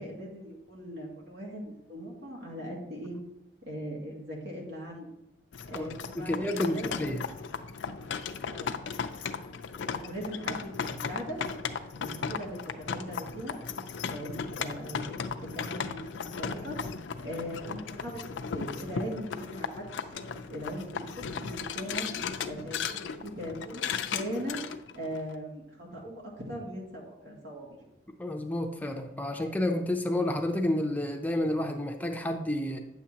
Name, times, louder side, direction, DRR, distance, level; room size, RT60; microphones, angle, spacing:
voice 1, 0.0-3.2 3.6-5.1 5.6-7.2 8.5-8.7 9.8-11.4 12.0-13.6 14.0-16.8 17.2-22.1 22.4-24.6 24.9-27.8, equal, 80° right, -3 dB, 2.2 m, -40 dB
sound 1, 5.5-25.3, left 6 dB, 80° left, 0.4 m, -36 dB
voice 2, 6.2-7.2 28.2-32.8, left 1 dB, 10° left, 4 dB, 0.5 m, -30 dB
9.3 x 7.2 x 2.9 m, 0.90 s
head